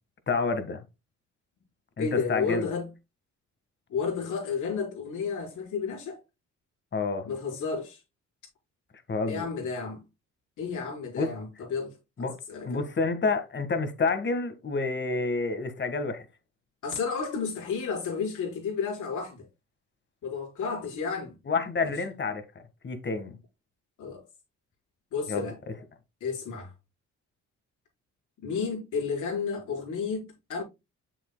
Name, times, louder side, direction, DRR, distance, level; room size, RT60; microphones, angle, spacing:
voice 1, 0.3-0.8 2.0-2.7 6.9-7.3 9.1-9.5 11.2-11.3 12.2-12.4 12.6-16.2 21.5-22.4 22.8-23.3 25.3-25.8, left 3 dB, 40° left, 1.6 m, -29 dB
voice 2, 2.0-2.9 3.9-6.2 7.3-8.0 9.3-10.0 10.6-12.8 16.8-19.5 20.2-21.3 21.8-21.9 24.0-24.2 25.1-25.6 26.2-26.7 28.4-30.6, left 5 dB, 80° left, 4.7 m, -32 dB
8.0 x 7.4 x 2.2 m
cardioid pair, 90°, 30 cm